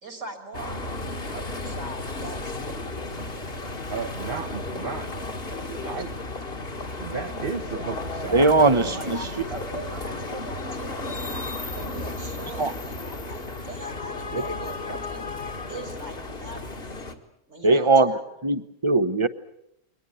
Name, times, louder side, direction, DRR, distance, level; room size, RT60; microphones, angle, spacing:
voice 1, 0.0-2.8 5.9-6.0 8.9-11.4 11.7-15.3 15.7-16.8 17.5-18.3, right 2 dB, 75° right, 6 dB, 4.0 m, -41 dB
sound 1, 0.5-17.1, left 2 dB, 50° left, 2.0 m, -34 dB
voice 2, 3.9-5.1 5.7-6.2 7.0-9.4, right 5 dB, 45° right, 3 dB, 1.2 m, -34 dB
voice 3, 8.3-9.3 10.3-10.4 12.6-12.7 14.3-14.4 17.6-18.1 18.4-19.3, right 3 dB, 25° right, 12 dB, 0.9 m, -20 dB
23.5 x 19.0 x 8.5 m, 0.77 s
omnidirectional pair, 1.3 m